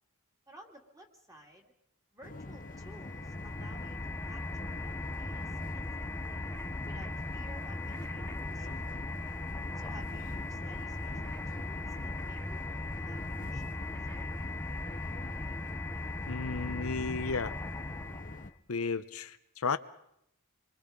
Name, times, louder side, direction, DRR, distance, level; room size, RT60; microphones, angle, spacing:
voice 1, 0.5-1.7 2.1-4.0 4.2-6.4 6.8-9.0 9.8-14.3, equal, 15° right, 2 dB, 2.7 m, -55 dB
sound 1, 2.2-18.5, left 2 dB, 40° left, 1.0 m, -46 dB
sound 2, 2.3-18.5, left 2 dB, 10° left, 0.7 m, -38 dB
voice 2, 16.3-17.5 18.7-19.8, left 4 dB, 70° left, 11 dB, 0.8 m, -33 dB
27.0 x 23.0 x 5.2 m, 0.76 s
head